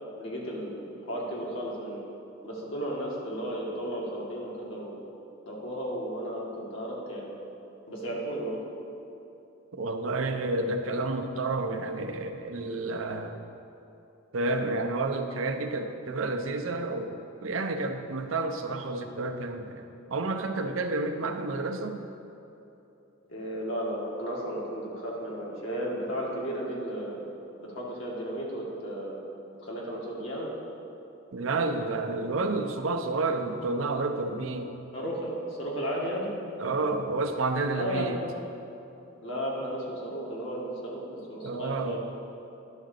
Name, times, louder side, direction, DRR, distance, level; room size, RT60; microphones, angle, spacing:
voice 1, 0.2-2.0 2.4-5.0 5.5-7.3 7.9-8.6 23.3-27.2 27.6-29.2 29.6-30.5 34.9-36.4 37.7-38.2 39.2-42.0, equal, 75° left, -4 dB, 1.9 m, -34 dB
voice 2, 9.7-13.4 14.3-22.0 31.3-34.7 36.6-38.2 41.4-42.0, right 3 dB, 85° right, 5 dB, 0.6 m, -30 dB
11.0 x 3.8 x 6.5 m, 2.9 s
head